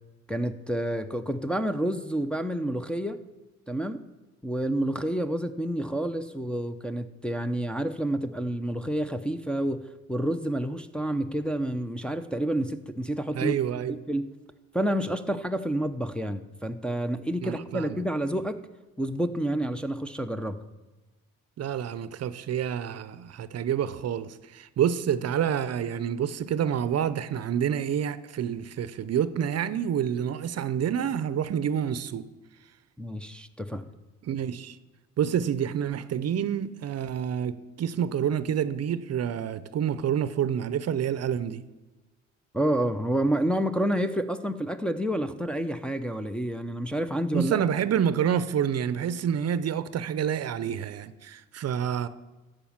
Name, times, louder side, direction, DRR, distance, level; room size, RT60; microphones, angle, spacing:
voice 1, 0.3-3.2 3.7-4.0 4.4-9.8 10.1-13.5 14.1-14.3 14.7-18.6 19.0-20.6 33.0-33.8 42.5-47.6, right 1 dB, 5° left, 0.7 m, -29 dB
voice 2, 13.3-14.0 17.4-18.0 21.6-32.3 34.2-34.8 35.2-41.6 47.3-52.1, right 9 dB, 55° right, 0.7 m, -28 dB
13.5 x 5.2 x 7.3 m
cardioid pair, 90°, 30 cm